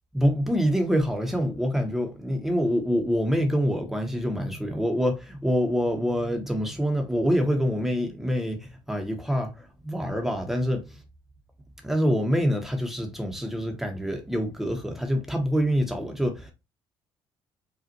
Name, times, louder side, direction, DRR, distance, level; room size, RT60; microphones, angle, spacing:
voice 1, 0.1-10.9 11.8-16.5, equal, 5° right, 1.0 m, -26 dB
5.1 x 2.5 x 2.8 m
cardioid pair, 145°, 9 cm